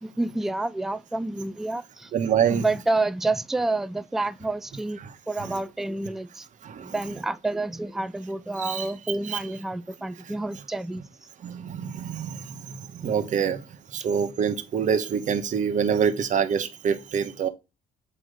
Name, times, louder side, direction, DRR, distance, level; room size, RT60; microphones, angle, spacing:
voice 1, 0.0-2.1 2.5-5.0 5.3-6.5 6.8-11.1, right 2 dB, ahead, 0.3 m, -29 dB
voice 2, 2.1-2.6 6.6-6.9 8.6-8.9 9.3-9.4 11.4-12.4 13.0-13.6 13.9-17.5, right 7 dB, 50° right, 1.1 m, -25 dB
7.8 x 3.0 x 5.0 m
cardioid pair, 110°, 17 cm